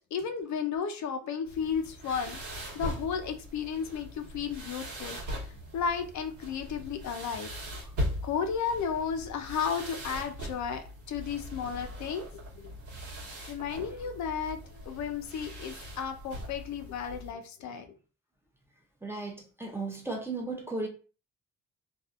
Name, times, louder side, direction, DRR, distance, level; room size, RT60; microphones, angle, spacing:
voice 1, 0.1-2.4 2.7-7.5 8.2-12.3 12.5-12.7 13.5-17.9, left 6 dB, 70° left, 0.5 m, -33 dB
sound 1, 1.4-17.3, equal, 75° right, 1.1 m, -40 dB
voice 2, 19.0-20.9, right 3 dB, 10° right, 0.6 m, -35 dB
2.6 x 2.3 x 2.4 m
cardioid pair, 90°, 30 cm